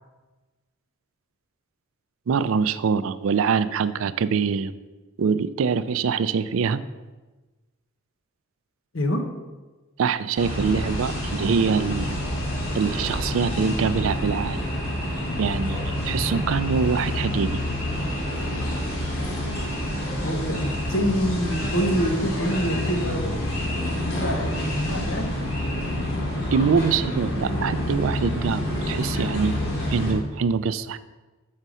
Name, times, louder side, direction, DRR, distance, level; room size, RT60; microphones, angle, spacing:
voice 1, 2.3-4.7 5.2-6.8 10.0-12.1 12.7-14.6 15.4-17.6 26.5-29.6 29.9-31.0, right 5 dB, 70° right, 14 dB, 0.4 m, -24 dB
voice 2, 8.9-9.3 20.2-23.6 24.1-25.3 25.6-26.0, equal, 65° left, 5 dB, 1.0 m, -26 dB
sound 1, 10.4-30.1, left 1 dB, 90° left, 2.6 m, -28 dB
6.6 x 5.4 x 6.2 m, 1.2 s
head